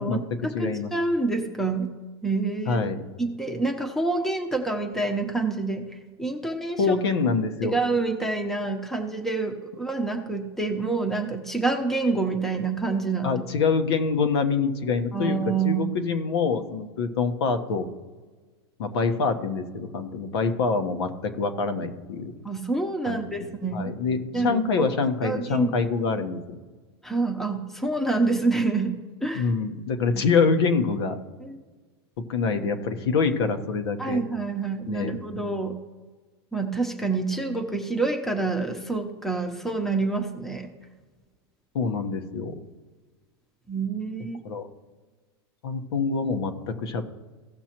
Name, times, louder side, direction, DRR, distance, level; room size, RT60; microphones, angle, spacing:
voice 1, 0.0-1.9 2.2-2.8 3.2-5.8 6.2-6.9 7.7-13.4 15.1-15.9 22.4-23.9 24.3-24.9 25.2-25.7 27.0-28.9 29.2-29.4 31.4-31.6 34.0-35.7 36.5-40.7 43.7-44.4, right 3 dB, ahead, 3 dB, 0.8 m, -27 dB
voice 2, 0.5-0.9 2.7-3.1 6.8-7.8 13.2-15.4 15.6-17.9 18.8-22.3 23.0-23.2 23.7-26.6 29.3-31.2 32.3-34.2 34.9-35.5 41.7-42.5 44.4-44.6 45.6-47.0, left 4 dB, 75° left, 7 dB, 1.2 m, -25 dB
16.5 x 6.2 x 3.0 m, 1.3 s
supercardioid pair, 140°, 14 cm